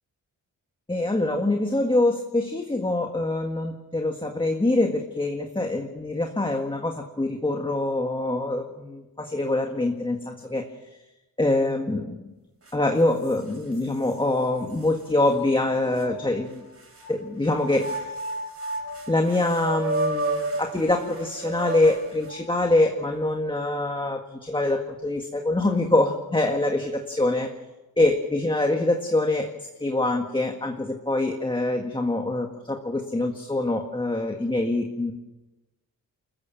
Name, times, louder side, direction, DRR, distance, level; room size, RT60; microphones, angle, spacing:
voice 1, 0.9-10.6 11.4-12.2 12.7-16.7 17.1-18.0 19.1-27.5 28.0-29.5 29.8-35.1, left 2 dB, 15° left, 3 dB, 1.8 m, -24 dB
sound 1, 12.7-12.8 13.2-14.2 14.8-14.9 16.0-17.1 17.7-22.6, right 2 dB, 45° right, 6.0 m, -32 dB
28.5 x 15.0 x 7.5 m, 1.0 s
wide cardioid pair, 135°, 34 cm